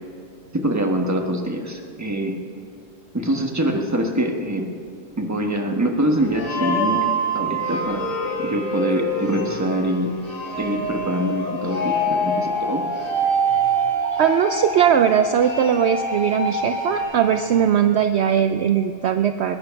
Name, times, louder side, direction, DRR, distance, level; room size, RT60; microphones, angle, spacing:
voice 1, 0.5-2.4 3.1-4.7 5.2-8.1 8.4-10.1 10.6-12.8, right 1 dB, 15° right, 2 dB, 1.2 m, -24 dB
sound 1, 6.2-17.7, right 3 dB, 85° left, 2.8 m, -27 dB
sound 2, 6.3-10.6 11.4-17.0, left 1 dB, 70° left, 4.4 m, -30 dB
voice 2, 14.2-19.6, right 8 dB, 65° right, 8 dB, 0.8 m, -19 dB
21.0 x 9.8 x 5.9 m, 2.4 s
omnidirectional pair, 1.4 m